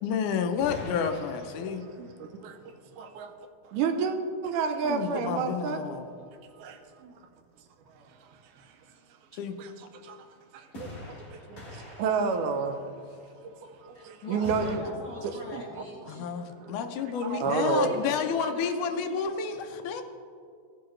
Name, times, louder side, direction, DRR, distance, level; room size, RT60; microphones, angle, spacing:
voice 1, 0.0-1.9 4.8-6.1 9.3-9.5 16.1-20.0, left 6 dB, 80° left, 6 dB, 2.1 m, -30 dB
sound 1, 0.6-2.3 10.7-13.0 14.4-14.8, left 2 dB, 30° left, 2.1 m, -43 dB
voice 2, 2.0-3.3 3.6-4.2 4.4-6.0 6.6-7.2 8.0-8.1 8.3-8.7 9.6-9.7 10.0-10.3 10.5-12.8 13.4-14.8 15.2-15.8 16.1-16.3 16.6-16.8 17.2-17.9, right 5 dB, 85° right, 6 dB, 2.3 m, -31 dB
voice 3, 13.9-16.4 17.6-19.1, left 1 dB, 60° left, -4 dB, 1.2 m, -43 dB
16.5 x 6.8 x 3.2 m, 2.2 s
omnidirectional pair, 3.6 m